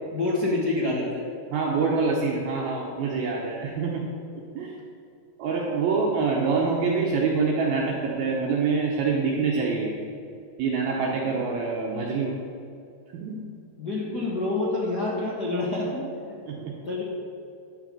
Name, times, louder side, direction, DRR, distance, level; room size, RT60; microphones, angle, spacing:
voice 1, 0.1-1.2 13.8-16.0 16.9-17.0, left 2 dB, 85° left, -7 dB, 0.8 m, -27 dB
voice 2, 1.5-4.0 4.5-4.7 5.4-9.9 10.6-12.4 13.1-13.4 16.5-16.7, right 4 dB, 70° right, -3 dB, 2.7 m, -25 dB
11.0 x 5.7 x 8.8 m, 2.5 s
omnidirectional pair, 4.8 m